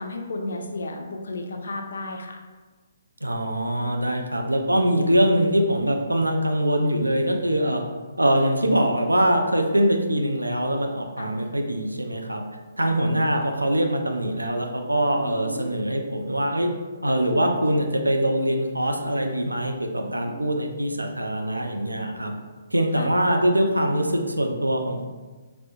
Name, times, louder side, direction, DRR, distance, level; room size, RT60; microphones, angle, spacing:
voice 1, 0.0-2.4 11.2-11.3 12.8-12.9 15.2-15.8 20.0-20.5 23.0-23.1, left 2 dB, 60° left, 2 dB, 0.3 m, -34 dB
voice 2, 3.2-7.8 8.2-12.4 12.8-16.7 17.0-22.3 22.7-25.0, right 1 dB, 85° right, 3 dB, 0.3 m, -23 dB
2.7 x 2.0 x 2.6 m, 1.3 s
figure-of-eight pair, 130°, 0 cm